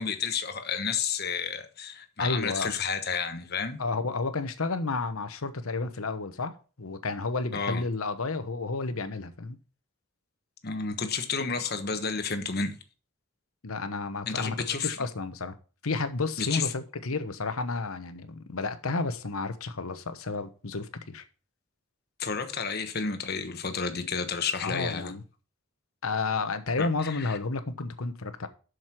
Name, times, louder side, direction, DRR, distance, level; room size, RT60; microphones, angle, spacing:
voice 1, 0.0-3.8 7.5-7.8 10.6-12.8 14.3-15.0 16.4-16.7 22.2-25.1 26.8-27.4, left 5 dB, 45° left, 1.2 m, -31 dB
voice 2, 2.2-2.7 3.8-9.6 13.6-15.5 15.8-21.2 24.6-25.2 26.0-28.5, left 3 dB, 80° left, 1.0 m, -31 dB
7.7 x 6.5 x 5.9 m
head